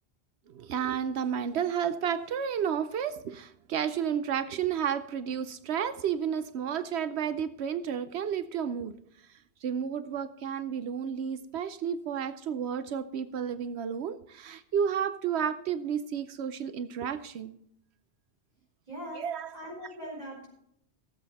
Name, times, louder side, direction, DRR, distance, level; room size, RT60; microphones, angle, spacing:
voice 1, 0.5-8.9 9.6-17.6 19.1-19.6, right 8 dB, 75° right, 12 dB, 0.9 m, -31 dB
voice 2, 18.9-20.5, equal, 40° right, -2 dB, 4.7 m, -41 dB
17.5 x 7.6 x 4.1 m, 0.72 s
omnidirectional pair, 1.1 m